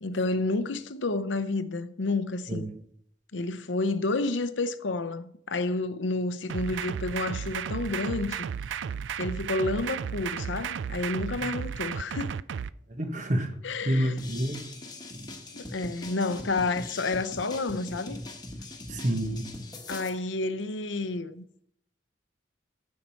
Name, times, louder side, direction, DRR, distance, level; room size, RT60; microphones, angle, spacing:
voice 1, 0.0-2.7 3.3-8.5 9.2-12.4 13.6-14.2 15.5-18.2 19.9-21.4, left 3 dB, 90° left, 0.7 m, -30 dB
sound 1, 6.5-12.7, right 7 dB, 80° right, 0.4 m, -34 dB
voice 2, 12.9-13.6 13.8-14.6 18.9-19.5, equal, 40° right, 1.3 m, -28 dB
sound 2, 14.2-20.1, left 1 dB, 20° left, 1.3 m, -41 dB
15.0 x 5.6 x 4.5 m
head